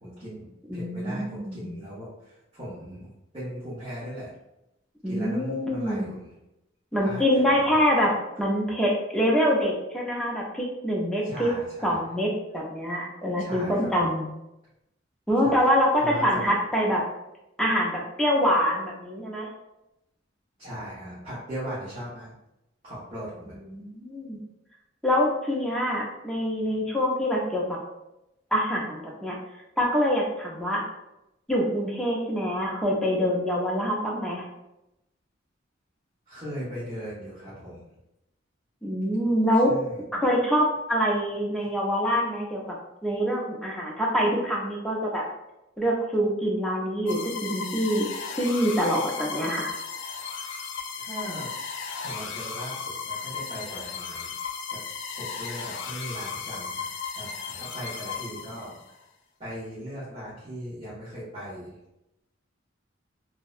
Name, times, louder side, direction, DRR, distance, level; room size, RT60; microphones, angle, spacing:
voice 1, 0.0-4.3 5.0-6.3 7.0-7.8 11.2-12.0 13.4-14.1 15.4-16.5 20.6-22.3 22.8-23.6 36.3-37.8 39.7-40.0 41.6-41.7 51.0-51.5 51.9-54.3 54.7-54.8 55.1-56.9 57.1-58.9 59.4-61.8, equal, 30° right, -11 dB, 0.8 m, -38 dB
voice 2, 0.7-1.8 5.0-6.1 6.9-11.5 11.8-14.3 15.3-17.0 17.6-19.5 23.7-24.4 25.0-27.8 28.5-29.4 29.8-30.8 31.5-34.5 38.8-39.7 40.1-42.6 43.0-45.2 45.8-48.1 48.4-49.7, equal, 5° left, -3 dB, 0.5 m, -25 dB
sound 1, 47.1-58.9, left 5 dB, 70° left, 0.3 m, -35 dB
2.6 x 2.1 x 2.4 m, 0.89 s
head